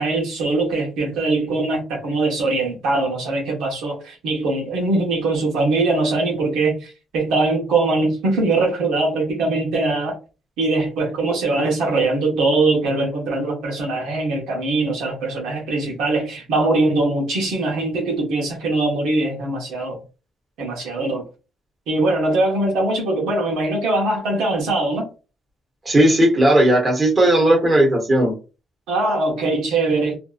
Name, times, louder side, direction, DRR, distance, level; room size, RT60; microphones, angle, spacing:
voice 1, 0.0-10.2 10.6-20.0 20.6-21.2 21.9-25.1 28.9-30.2, right 2 dB, 90° right, 0.9 m, -21 dB
voice 2, 25.8-28.3, right 1 dB, 25° right, 1.2 m, -16 dB
2.6 x 2.2 x 2.4 m
cardioid pair, 90°, 0 cm